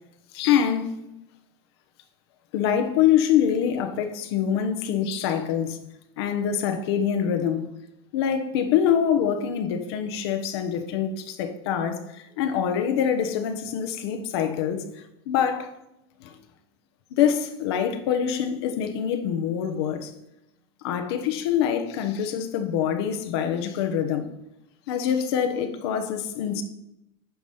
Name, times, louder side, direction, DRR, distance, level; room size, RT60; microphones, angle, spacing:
voice 1, 0.3-0.9 2.5-5.8 6.2-7.7 8.1-15.7 16.2-16.3 17.1-20.1 20.8-24.3 24.9-26.6, left 8 dB, 70° left, 7 dB, 1.1 m, -25 dB
9.3 x 4.9 x 5.7 m, 0.86 s
supercardioid pair, 120°, 14 cm